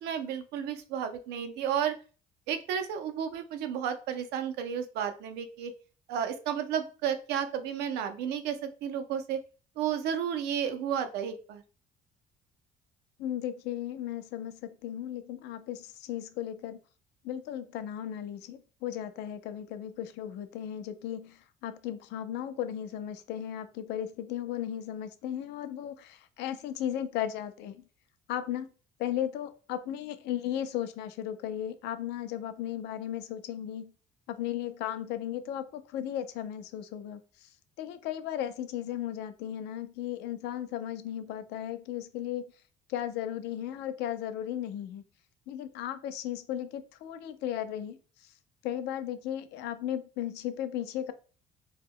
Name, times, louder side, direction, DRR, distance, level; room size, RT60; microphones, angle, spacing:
voice 1, 0.0-1.9 2.5-5.7 6.1-9.4 9.8-11.6, right 8 dB, 80° right, 8 dB, 0.5 m, -32 dB
voice 2, 13.2-16.8 17.2-27.8 28.3-28.7 29.0-33.9 34.3-37.5 37.8-42.4 42.9-45.0 45.5-48.3 48.6-51.1, left 11 dB, 85° left, 10 dB, 0.4 m, -36 dB
2.2 x 2.0 x 3.5 m, 0.37 s
cardioid pair, 110°, 17 cm